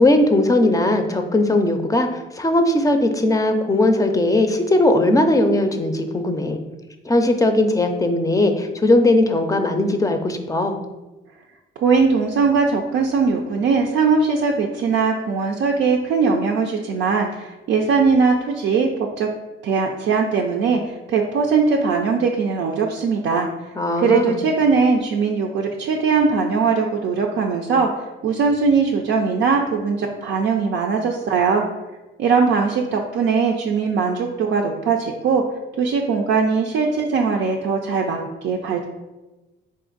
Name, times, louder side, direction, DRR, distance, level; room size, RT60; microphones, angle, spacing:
voice 1, 0.0-6.6 7.0-10.8 23.8-24.4, left 1 dB, 15° left, 6 dB, 0.5 m, -18 dB
voice 2, 11.8-19.3 19.6-23.5 24.0-27.9 28.2-31.6 32.2-35.4 35.8-38.9, right 5 dB, 75° right, 0 dB, 0.5 m, -20 dB
4.2 x 2.5 x 3.9 m, 1.1 s
cardioid pair, 90°, 20 cm